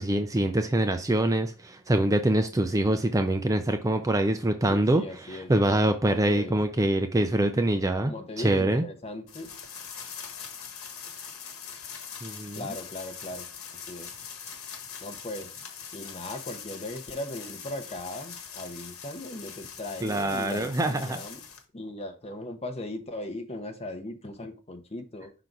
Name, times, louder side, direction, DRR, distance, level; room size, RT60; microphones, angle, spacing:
voice 1, 0.0-5.0 5.3-8.8 12.2-12.6 20.0-21.2, right 1 dB, 15° right, 0.4 m, -25 dB
voice 2, 4.7-5.5 6.0-6.6 8.1-9.6 12.5-13.5 13.7-14.1 15.0-15.5 15.9-21.4 21.7-25.3, left 1 dB, 30° left, 0.9 m, -38 dB
sound 1, 9.3-21.6, left 7 dB, 85° left, 1.2 m, -42 dB
5.6 x 3.9 x 4.7 m
head